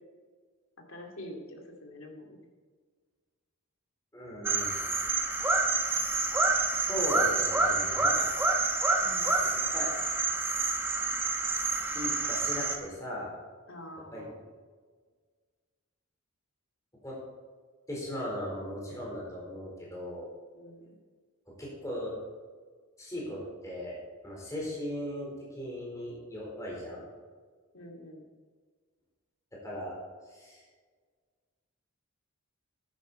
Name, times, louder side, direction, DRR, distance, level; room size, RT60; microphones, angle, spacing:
voice 1, 0.9-2.4 9.0-9.4 13.7-14.3 20.5-20.9 27.7-28.2, left 1 dB, 65° left, 1 dB, 2.2 m, -46 dB
voice 2, 4.1-4.8 6.6-8.3 9.4-9.9 11.9-13.3 14.1-14.3 17.0-17.2 17.9-20.3 21.5-22.2 23.0-24.0 24.2-27.1 29.5-30.0 30.3-30.7, equal, 15° left, -4 dB, 4.0 m, -38 dB
sound 1, 4.4-12.8, right 3 dB, 10° right, 1.0 m, -28 dB
12.5 x 10.0 x 4.2 m, 1.5 s
head